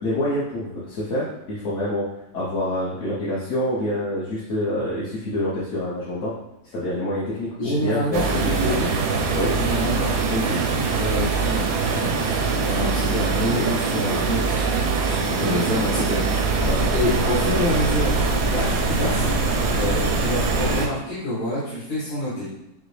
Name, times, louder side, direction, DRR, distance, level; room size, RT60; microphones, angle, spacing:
voice 1, 0.0-2.1 2.3-6.3 6.7-8.8 9.3-9.6 16.6-16.9, left 1 dB, 55° left, -8 dB, 1.1 m, -27 dB
voice 2, 7.6-8.9 9.5-10.6 11.0-11.6 11.9-12.3 12.6-22.5, left 1 dB, 75° left, -9 dB, 1.7 m, -27 dB
sound 1, 8.1-20.9, right 4 dB, 80° right, 1.1 m, -23 dB
sound 2, 16.4-20.8, left 1 dB, 25° left, 0.9 m, -27 dB
5.8 x 2.1 x 3.2 m, 0.87 s
omnidirectional pair, 1.7 m